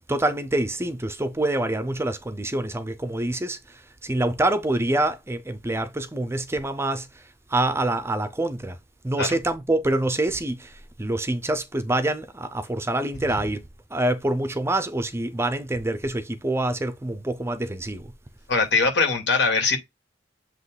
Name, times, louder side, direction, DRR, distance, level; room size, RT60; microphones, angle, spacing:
voice 1, 0.1-7.2 7.5-8.8 9.0-13.6 13.9-18.1, right 1 dB, 15° right, 0.6 m, -26 dB
voice 2, 18.5-19.8, left 4 dB, 65° left, 2.9 m, -21 dB
7.9 x 3.1 x 4.0 m
head